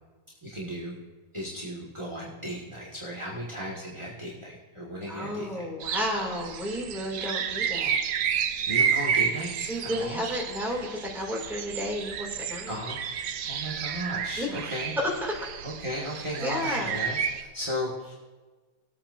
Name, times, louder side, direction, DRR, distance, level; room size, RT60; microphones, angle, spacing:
voice 1, 0.4-1.0 1.3-5.7 8.6-10.2 12.7-14.9 15.6-18.1, equal, 20° right, -6 dB, 1.4 m, -35 dB
voice 2, 5.1-8.0 9.7-12.8 14.4-14.7 15.0-15.1 16.4-16.9, equal, ahead, -3 dB, 2.3 m, -32 dB
sound 1, 5.8-17.4, right 7 dB, 75° right, 1.3 m, -31 dB
19.5 x 8.7 x 2.5 m, 1.3 s
omnidirectional pair, 1.9 m